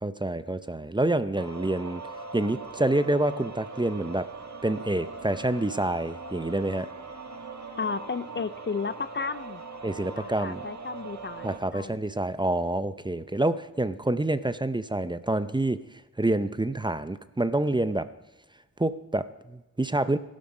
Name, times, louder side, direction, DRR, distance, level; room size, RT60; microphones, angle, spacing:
voice 1, 0.0-2.0 2.3-4.3 4.6-6.9 9.8-10.6 11.4-15.8 16.2-18.1 18.8-20.2, right 1 dB, 15° right, 13 dB, 0.5 m, -27 dB
sound 1, 1.4-11.6, right 3 dB, 60° right, 1.6 m, -41 dB
voice 2, 7.8-9.6 10.2-12.0, left 5 dB, 35° left, 14 dB, 0.4 m, -33 dB
15.5 x 11.5 x 5.3 m, 1.0 s
wide cardioid pair, 90°, 32 cm